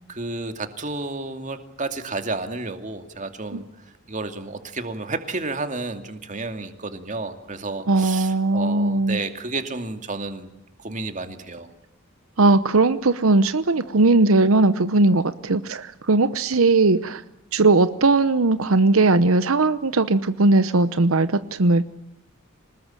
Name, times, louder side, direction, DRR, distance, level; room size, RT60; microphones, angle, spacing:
voice 1, 0.1-3.6 4.1-10.5 10.8-11.7, right 3 dB, 35° right, 7 dB, 2.5 m, -31 dB
voice 2, 7.9-9.2 12.4-17.2 17.5-21.9, right 3 dB, 85° right, 12 dB, 0.9 m, -19 dB
26.0 x 20.0 x 9.0 m, 0.89 s
head